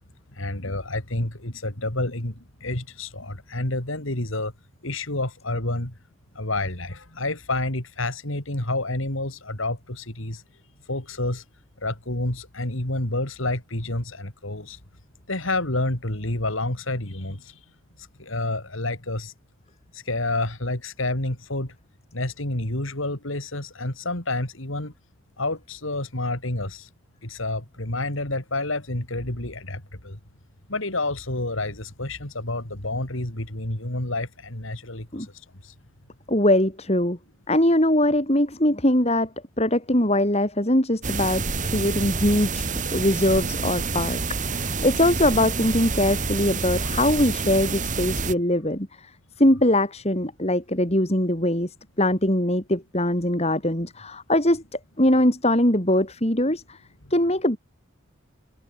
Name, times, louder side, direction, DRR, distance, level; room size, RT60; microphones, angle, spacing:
voice 1, 0.3-4.5 4.8-5.9 6.3-10.4 10.9-11.4 11.8-14.8 15.3-17.6 18.2-19.3 19.9-21.7 22.1-24.9 25.4-26.9 27.2-30.2 30.7-35.3 35.6-35.7 57.0-57.1, left 2 dB, 75° left, 4.4 m, -29 dB
voice 2, 36.3-37.2 37.5-39.3 39.6-49.1 49.4-56.8 57.1-57.6, left 1 dB, 30° left, 5.0 m, -22 dB
sound 1, 41.0-48.3, right 4 dB, 40° right, 2.1 m, -28 dB
head